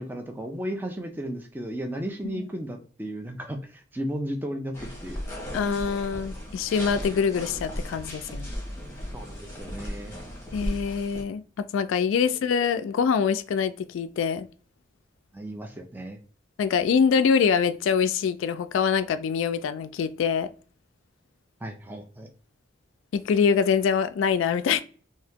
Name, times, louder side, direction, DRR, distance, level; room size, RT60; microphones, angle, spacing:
voice 1, 0.0-4.7 5.0-5.2 9.1-10.2 15.3-16.2 21.6-22.3, equal, 10° right, 0.4 m, -34 dB
sound 1, 4.7-11.2, equal, 15° left, 1.2 m, -36 dB
voice 2, 5.5-8.5 10.5-11.4 11.7-14.5 16.6-20.5 23.1-24.8, left 6 dB, 85° left, 0.3 m, -24 dB
2.8 x 2.7 x 3.4 m
head